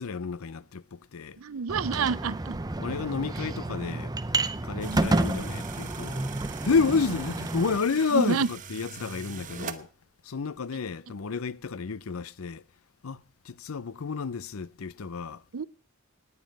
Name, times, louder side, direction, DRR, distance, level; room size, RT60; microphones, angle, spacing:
voice 1, 0.0-1.4 2.8-4.1 4.6-6.3 6.6-9.9 10.2-12.6 13.0-15.4, left 5 dB, 80° left, 0.6 m, -30 dB
voice 2, 1.4-2.6 4.8-5.1 8.1-8.5 15.5-15.6, right 5 dB, 75° right, 0.5 m, -28 dB
sound 1, 1.7-7.8, right 2 dB, 20° right, 0.6 m, -30 dB
sound 2, 4.8-9.8, right 6 dB, 40° right, 1.0 m, -43 dB
18.5 x 9.6 x 5.3 m
head